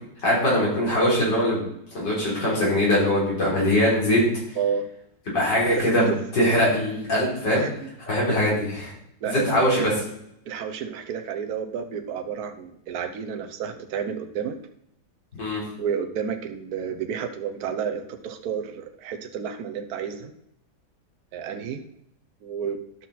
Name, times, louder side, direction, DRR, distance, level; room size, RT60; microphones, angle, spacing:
voice 1, 0.2-1.6 1.9-4.2 5.3-7.6 8.1-8.9 9.2-9.9 15.4-15.6, left 1 dB, 80° left, -5 dB, 4.5 m, -22 dB
voice 2, 5.8-6.2 7.5-7.7 9.2-10.0 10.5-14.5 15.8-20.3 21.3-21.8 22.4-22.8, right 7 dB, 65° right, 5 dB, 1.3 m, -30 dB
12.0 x 6.0 x 4.2 m, 0.75 s
omnidirectional pair, 1.9 m